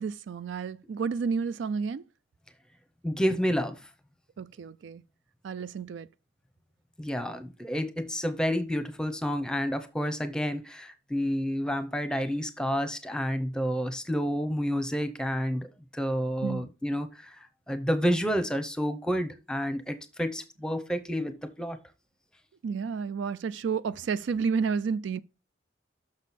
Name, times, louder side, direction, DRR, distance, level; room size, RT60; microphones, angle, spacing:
voice 1, 0.0-2.0 4.4-5.0 5.4-6.1 16.4-16.7 22.6-25.2, right 5 dB, 70° right, 0.3 m, -31 dB
voice 2, 3.0-3.8 7.0-15.7 15.9-17.4 17.7-21.8, equal, 5° left, 0.7 m, -29 dB
6.3 x 6.3 x 4.2 m
head